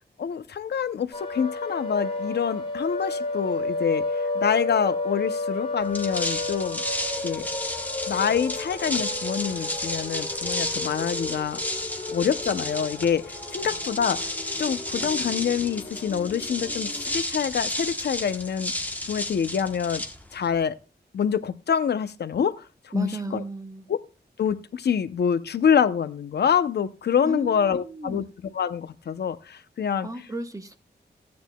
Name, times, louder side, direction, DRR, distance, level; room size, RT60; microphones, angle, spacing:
voice 1, 0.2-6.8 7.2-7.5 8.1-11.6 12.1-20.0 20.3-20.8 21.1-23.4 23.9-24.0 24.4-28.2 28.5-30.1, left 7 dB, 75° left, 0.7 m, -26 dB
sound 1, 1.1-17.1, left 2 dB, 35° left, 3.0 m, -33 dB
sound 2, 5.8-20.6, left 1 dB, 10° left, 1.1 m, -32 dB
voice 2, 22.9-23.8 27.2-28.2 30.0-30.8, right 3 dB, 20° right, 1.0 m, -35 dB
15.5 x 9.4 x 2.3 m
wide cardioid pair, 145°, 17 cm